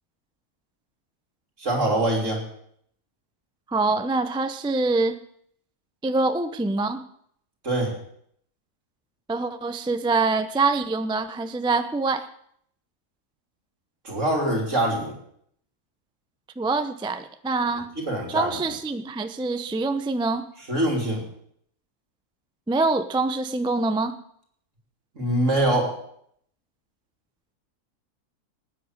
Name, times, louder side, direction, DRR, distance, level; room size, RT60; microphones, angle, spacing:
voice 1, 1.6-2.5 7.6-7.9 14.0-15.2 18.0-18.6 20.7-21.3 25.1-26.0, right 1 dB, 50° right, 0 dB, 3.7 m, -24 dB
voice 2, 3.7-5.2 6.0-7.0 9.3-12.3 16.6-17.9 18.3-20.5 22.7-24.2, right 3 dB, 10° right, 9 dB, 0.3 m, -25 dB
19.0 x 9.4 x 6.5 m, 0.68 s
omnidirectional pair, 1.7 m